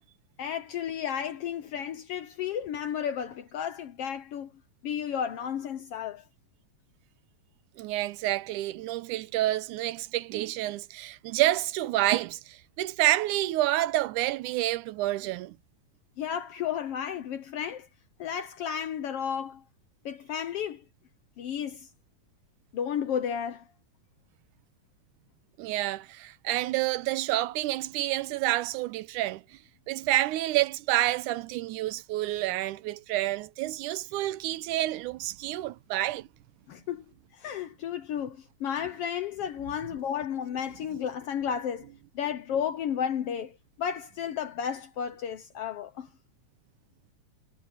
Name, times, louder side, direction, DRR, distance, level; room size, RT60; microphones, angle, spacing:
voice 1, 0.4-4.5 4.8-6.2 16.2-17.9 18.2-19.6 20.0-20.8 21.4-21.9 22.7-23.6 36.7-37.0 37.4-41.9 42.1-46.1, left 8 dB, 70° left, 1.5 m, -33 dB
voice 2, 7.8-15.6 25.6-29.4 29.9-36.3, right 15 dB, 85° right, 2.2 m, -28 dB
omnidirectional pair, 3.5 m